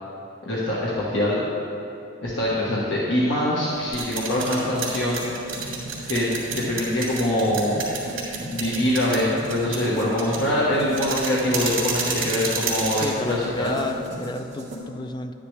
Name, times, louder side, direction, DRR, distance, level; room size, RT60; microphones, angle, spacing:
voice 1, 0.4-1.4 2.2-5.2 6.1-7.9 8.5-13.8, left 1 dB, 60° left, -7 dB, 1.4 m, -24 dB
sound 1, 3.7-14.1, right 5 dB, 75° right, 2.5 m, -31 dB
sound 2, 4.3-14.8, equal, 35° right, 2.0 m, -38 dB
voice 2, 6.5-6.8 13.0-15.3, left 2 dB, 20° left, 8 dB, 0.3 m, -32 dB
11.0 x 9.8 x 3.3 m, 2.8 s
head